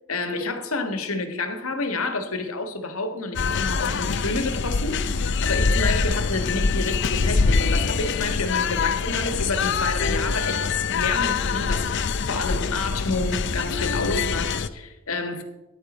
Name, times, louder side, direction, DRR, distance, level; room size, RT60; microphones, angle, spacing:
voice 1, 0.1-10.6 10.9-15.4, left 3 dB, 75° left, 6 dB, 1.6 m, -29 dB
sound 1, 3.4-14.7, left 5 dB, 55° left, 0.5 m, -24 dB
14.0 x 10.5 x 4.3 m, 1.0 s
head